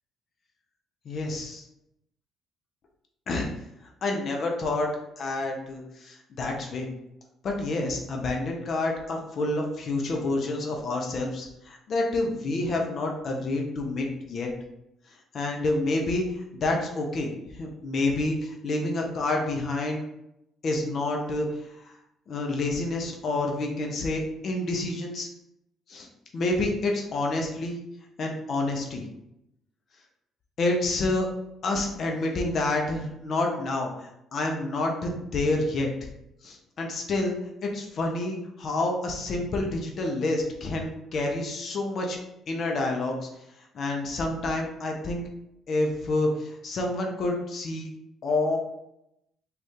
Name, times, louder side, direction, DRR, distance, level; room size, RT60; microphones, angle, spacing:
voice 1, 1.1-1.6 3.3-3.5 4.0-4.9 5.2-6.9 7.4-14.5 15.3-16.2 16.6-20.0 20.6-21.5 21.8-21.9 22.3-25.3 25.9-26.1 26.3-27.8 28.2-29.0 30.6-31.3 31.6-35.9 36.4-37.4 37.6-42.2 42.5-43.3 43.7-45.2 45.7-47.9 48.2-48.6, left 2 dB, 50° left, 1 dB, 0.5 m, -28 dB
2.5 x 2.3 x 3.5 m, 0.84 s
figure-of-eight pair, 50°, 0 cm